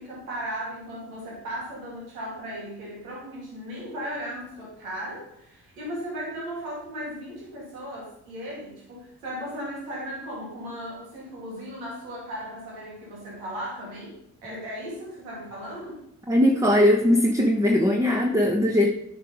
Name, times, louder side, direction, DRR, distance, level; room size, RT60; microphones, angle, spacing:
voice 1, 0.0-16.0, equal, 85° right, -4 dB, 2.4 m, -36 dB
voice 2, 16.3-18.9, left 1 dB, 10° right, 2 dB, 1.1 m, -20 dB
9.0 x 4.7 x 5.0 m, 0.79 s
hypercardioid pair, 45°, 40 cm